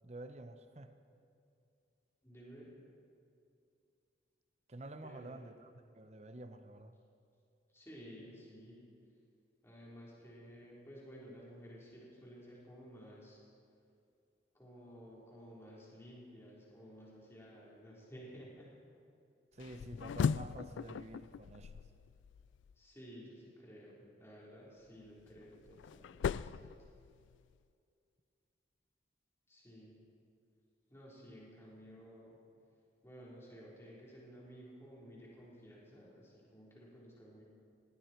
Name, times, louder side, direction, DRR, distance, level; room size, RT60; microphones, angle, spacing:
voice 1, 0.0-0.9 4.7-6.9 19.5-21.8, right 2 dB, 35° right, 9 dB, 0.8 m, -49 dB
voice 2, 2.2-2.7 5.0-5.5 7.7-8.8 9.6-13.4 14.5-18.7 22.8-26.7 29.5-30.0 30.9-32.4 33.0-37.4, equal, 15° left, -6 dB, 4.0 m, -54 dB
sound 1, 19.6-22.7 25.0-27.5, left 6 dB, 80° left, 0.3 m, -39 dB
19.5 x 16.0 x 4.5 m, 2.5 s
head